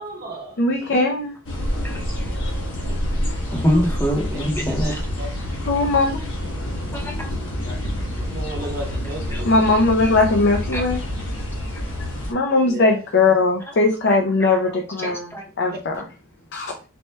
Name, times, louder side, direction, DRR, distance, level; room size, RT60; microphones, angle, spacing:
voice 1, 0.0-0.6 2.7-3.0 4.7-4.9 5.2-5.3 8.1-9.6 12.6-13.0, right 1 dB, 50° right, 1 dB, 0.9 m, -34 dB
voice 2, 0.6-1.3 5.7-6.2 9.5-11.0 12.3-15.3 15.6-16.0 16.5-16.7, left 3 dB, 55° left, 3 dB, 0.5 m, -19 dB
sound 1, 1.4-12.3, left 1 dB, 85° left, 1.0 m, -27 dB
voice 3, 3.5-5.0 6.9-7.3 8.5-8.8 9.3-9.5 10.7-10.8 14.1-15.4, equal, 10° left, 1 dB, 0.7 m, -25 dB
4.2 x 2.1 x 3.2 m, 0.35 s
head